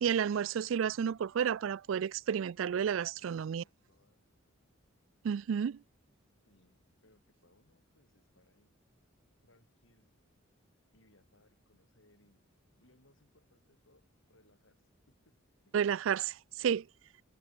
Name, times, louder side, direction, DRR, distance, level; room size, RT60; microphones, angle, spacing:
voice 1, 0.0-3.6 5.2-5.8 15.7-16.9, right 8 dB, 70° right, 0.4 m, -31 dB
voice 2, 3.1-4.2 6.5-8.8 9.4-10.2 10.9-12.4 12.8-15.8, left 1 dB, 70° left, 5.3 m, -69 dB
head